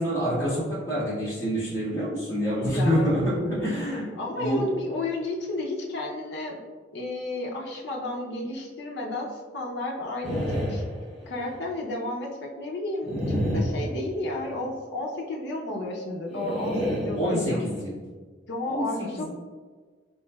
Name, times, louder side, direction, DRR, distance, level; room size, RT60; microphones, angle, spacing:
voice 1, 0.0-4.1 4.4-4.7 17.2-17.9 18.6-18.9 19.1-19.2, equal, 15° left, -12 dB, 1.4 m, -26 dB
voice 2, 2.5-3.6 4.1-6.6 6.9-10.8 11.3-17.6 18.5-19.2, left 2 dB, 70° left, -2 dB, 0.5 m, -32 dB
sound 1, 10.2-11.6 13.0-14.5 16.3-17.8, equal, ahead, 0.7 m, -30 dB
3.9 x 3.0 x 2.2 m, 1.4 s
head